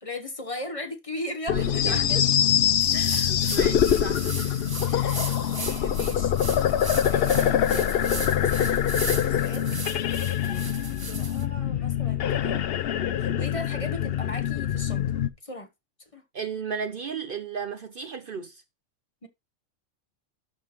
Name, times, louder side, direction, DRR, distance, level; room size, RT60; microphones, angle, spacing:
voice 1, 0.0-2.2 3.1-3.2 4.9-6.4 7.1-9.7 11.1-12.6 13.2-15.0 15.4-15.7 16.1-16.2 19.2-19.3, left 1 dB, 30° left, 1.3 m, -37 dB
sound 1, 1.5-15.3, left 9 dB, 60° left, 0.8 m, -24 dB
voice 2, 1.5-2.3 2.9-4.6 10.5-10.7 16.3-18.6, right 6 dB, 50° right, 0.8 m, -35 dB
sound 2, 2.8-11.4, right 3 dB, 20° right, 0.7 m, -37 dB
12.5 x 5.5 x 3.0 m
omnidirectional pair, 1.3 m